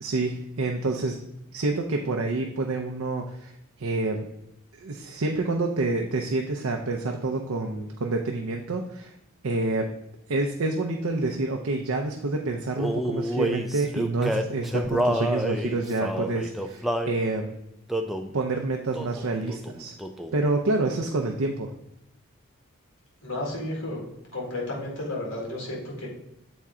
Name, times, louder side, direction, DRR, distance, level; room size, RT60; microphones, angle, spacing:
voice 1, 0.0-1.2 1.5-4.2 4.7-9.1 9.4-9.9 10.3-17.5 18.3-19.9 20.3-21.7, right 2 dB, 70° right, 2 dB, 0.6 m, -28 dB
Male singing, 12.8-17.2 17.9-18.3 18.9-19.2 19.5-20.4, right 1 dB, ahead, 0.3 m, -28 dB
voice 2, 23.2-24.0 24.3-26.1, left 1 dB, 75° left, -2 dB, 2.3 m, -32 dB
7.1 x 4.4 x 3.6 m, 0.83 s
head